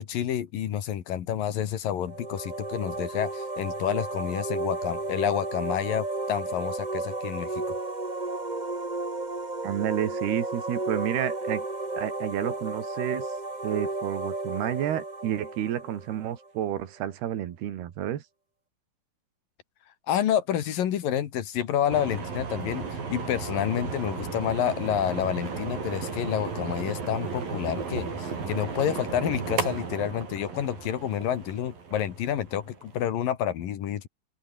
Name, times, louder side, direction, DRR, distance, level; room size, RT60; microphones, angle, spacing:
voice 1, 0.0-7.8 20.1-34.1, left 10 dB, 65° left, 3.3 m, -29 dB
sound 1, 2.0-16.7, right 2 dB, 15° right, 1.5 m, -33 dB
voice 2, 9.6-11.6 12.0-13.3 13.6-18.2, right 11 dB, 85° right, 4.0 m, -30 dB
sound 2, 21.9-33.0, right 5 dB, 60° right, 7.3 m, -34 dB
open air
omnidirectional pair, 4.5 m